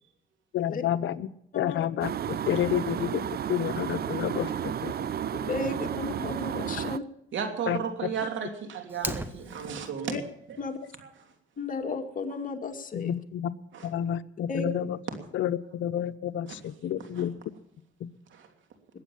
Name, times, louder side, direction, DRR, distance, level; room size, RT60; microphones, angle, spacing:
voice 1, 0.5-1.3 1.5-5.4 7.7-7.8 12.9-13.5 13.8-15.0 15.3-17.3, left 10 dB, 75° left, 0.9 m, -30 dB
voice 2, 1.5-1.8 2.6-2.7 5.4-7.0 10.1-10.2 10.6-10.8 11.6-13.1 14.5-14.7, left 4 dB, 40° left, 2.2 m, -34 dB
sound 1, 2.0-7.0, right 9 dB, 50° right, 0.7 m, -32 dB
voice 3, 7.3-10.1 10.5-10.6 11.0-11.1 12.3-12.4 13.7-13.9 16.5-16.6 17.1-17.3 18.3-18.5, right 7 dB, 75° right, 3.0 m, -34 dB
Fire, 8.9-9.9, right 1 dB, 10° right, 1.2 m, -36 dB
21.5 x 8.5 x 7.2 m
cardioid pair, 90°, 20 cm